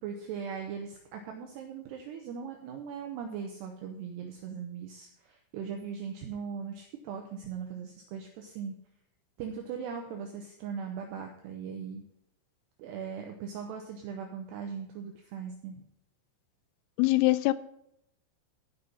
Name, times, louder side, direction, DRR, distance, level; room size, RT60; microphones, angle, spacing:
voice 1, 0.0-8.7 9.4-12.0 12.8-15.8, right 6 dB, 80° right, 3 dB, 2.6 m, -39 dB
voice 2, 17.0-17.5, left 20 dB, 90° left, 14 dB, 3.2 m, -23 dB
15.5 x 5.6 x 5.6 m, 0.78 s
omnidirectional pair, 5.8 m